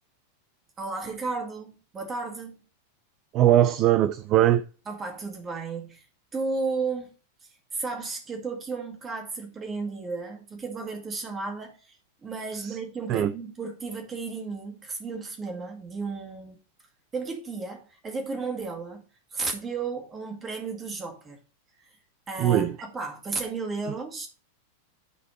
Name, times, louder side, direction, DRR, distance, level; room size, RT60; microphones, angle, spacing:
voice 1, 0.8-2.6 4.9-6.1 6.3-7.1 7.4-16.6 17.1-19.0 19.3-21.4 21.8-21.9 22.3-24.3, right 4 dB, 20° right, 2.1 m, -34 dB
voice 2, 3.3-4.6 12.6-12.8 13.1-13.3 22.4-22.8, right 12 dB, 35° right, 0.4 m, -21 dB
10.0 x 4.1 x 4.3 m
figure-of-eight pair, 90°, 0 cm